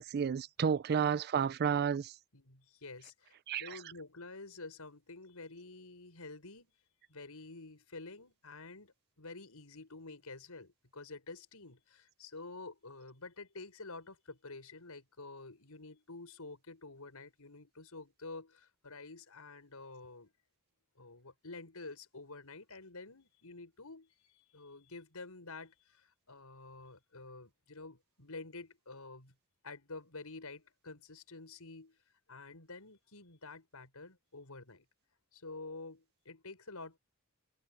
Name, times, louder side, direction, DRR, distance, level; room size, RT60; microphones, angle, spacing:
voice 1, 0.0-2.1 3.5-3.7, right 7 dB, 45° right, 0.4 m, -31 dB
voice 2, 2.3-6.7 7.1-20.3 21.0-29.3 29.6-32.0 32.3-34.8 35.3-37.0, left 3 dB, 80° left, 5.6 m, -49 dB
head